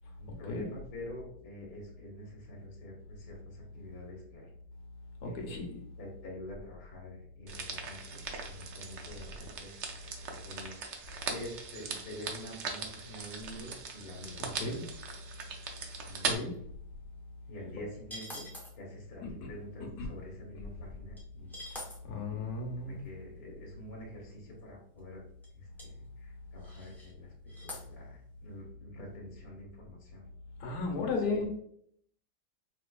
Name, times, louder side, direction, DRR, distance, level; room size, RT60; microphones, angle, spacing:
voice 1, 0.2-4.5 5.2-5.6 6.0-10.1 10.4-10.9 11.3-14.7 16.1-16.7 17.5-21.5 22.8-25.2 25.5-30.2 30.9-31.1, left 1 dB, 60° left, -3 dB, 1.6 m, -47 dB
voice 2, 5.2-5.8 14.4-14.8 16.2-16.5 19.2-19.3 20.0-20.1 22.0-23.0 30.6-31.5, left 3 dB, 75° left, 2 dB, 1.3 m, -34 dB
sound 1, 7.5-16.4, right 5 dB, 80° right, 0.6 m, -40 dB
sound 2, 18.1-18.7 21.2-21.3 21.5-22.0 24.5-24.6 25.0-25.1 25.4-25.5 25.8-25.9 26.6-27.1 27.5-27.9, left 1 dB, 5° left, 0.3 m, -44 dB
5.2 x 2.5 x 2.2 m, 0.67 s
omnidirectional pair, 1.8 m